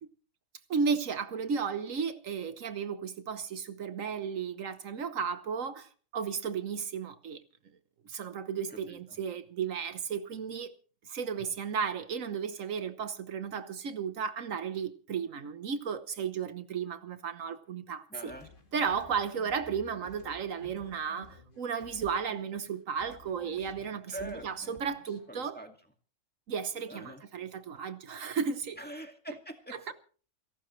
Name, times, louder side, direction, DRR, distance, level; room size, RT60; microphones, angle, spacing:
voice 1, 0.7-7.4 8.1-10.7 11.1-18.3 18.7-25.6 26.5-28.8 29.9-30.0, right 6 dB, 75° right, 1.4 m, -34 dB
voice 2, 8.7-9.2 18.1-18.5 24.1-24.7 25.3-25.7 26.9-27.2 28.8-29.9, right 1 dB, 5° left, 2.0 m, -44 dB
sound 1, 18.3-22.7 23.0-25.3, left 2 dB, 40° left, 2.3 m, -54 dB
29.0 x 12.0 x 3.2 m
omnidirectional pair, 1.4 m